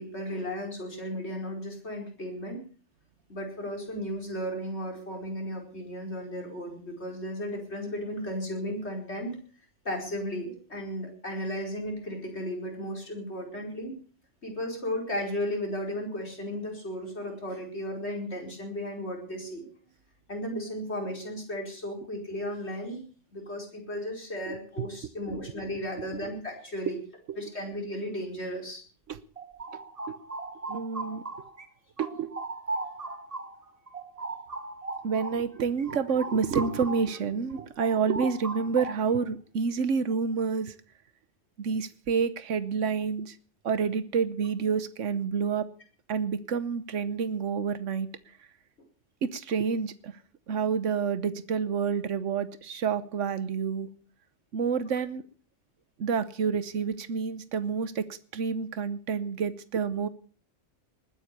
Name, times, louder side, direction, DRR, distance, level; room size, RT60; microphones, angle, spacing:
voice 1, 0.0-2.6 3.3-9.4 9.8-13.9 14.4-19.7 20.3-23.0 23.3-27.0 27.4-28.8, equal, 65° left, 1 dB, 5.1 m, -35 dB
voice 2, 24.5-24.9 25.3-25.4 29.1-29.2 30.1-30.2 30.7-31.2 32.0-32.3 35.0-40.7 41.6-43.4 43.6-45.7 46.1-48.1 49.2-50.2 50.5-53.9 54.5-55.2 56.0-60.1, right 6 dB, 90° right, 14 dB, 1.3 m, -29 dB
sound 1, 29.1-31.7 32.0-37.2 37.5-39.2, right 3 dB, 30° right, 1.4 m, -38 dB
20.5 x 9.4 x 6.7 m, 0.42 s
omnidirectional pair, 1.2 m